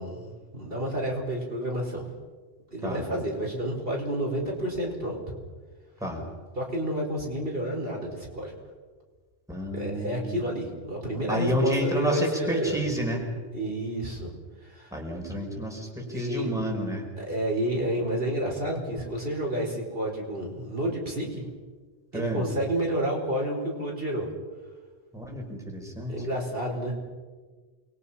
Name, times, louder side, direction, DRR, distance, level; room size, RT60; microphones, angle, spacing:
voice 1, 0.0-2.0 2.7-5.2 6.5-8.5 9.7-12.8 13.5-14.3 14.6-15.0 16.1-16.5 17.2-21.5 22.1-24.3 26.1-27.1, right 1 dB, 60° right, -1 dB, 5.2 m, -30 dB
voice 2, 9.5-10.4 11.3-13.3 14.9-17.1 22.1-22.4 25.1-26.2, equal, 5° right, 0 dB, 5.3 m, -30 dB
29.5 x 22.5 x 5.8 m, 1.4 s
omnidirectional pair, 1.1 m